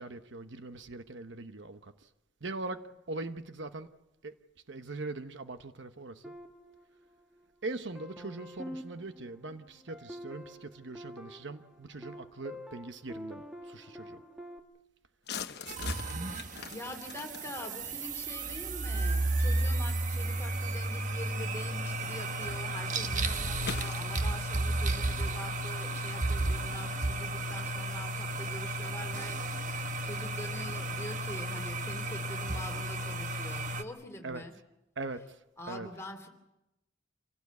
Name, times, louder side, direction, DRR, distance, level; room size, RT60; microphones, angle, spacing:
voice 1, 0.0-2.1 2.4-3.9 4.2-4.4 4.7-6.4 7.6-14.2 34.2-34.4 35.0-35.9, right 2 dB, 60° right, 1.0 m, -41 dB
sound 1, 6.2-7.5 7.9-14.6, equal, 5° right, 1.8 m, -47 dB
sound 2, 15.2-27.7, left 6 dB, 55° left, 1.1 m, -47 dB
sound 3, 15.7-33.8, right 2 dB, 40° right, 1.2 m, -33 dB
voice 2, 16.4-34.5 35.6-36.3, left 1 dB, 15° left, 2.9 m, -45 dB
27.0 x 17.0 x 8.3 m
head